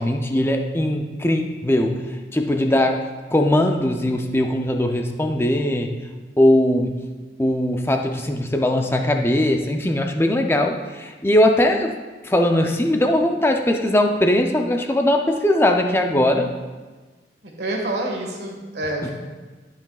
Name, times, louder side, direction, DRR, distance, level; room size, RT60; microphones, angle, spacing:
voice 1, 0.0-2.0 2.3-3.0 3.3-5.9 6.4-6.9 7.4-11.9 12.2-16.5 19.0-19.1, left 1 dB, 15° left, 3 dB, 0.5 m, -20 dB
voice 2, 17.4-19.1, right 1 dB, 70° right, 0 dB, 1.6 m, -27 dB
13.0 x 5.8 x 2.4 m, 1.3 s
head